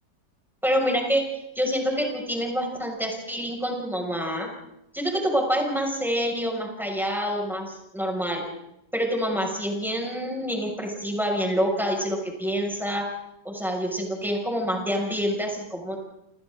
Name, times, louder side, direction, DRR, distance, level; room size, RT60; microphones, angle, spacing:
voice 1, 0.6-1.2 1.5-4.5 4.9-8.4 8.9-13.1 13.4-16.0, equal, ahead, -1 dB, 6.3 m, -27 dB
29.5 x 28.0 x 3.9 m, 0.83 s
omnidirectional pair, 1.9 m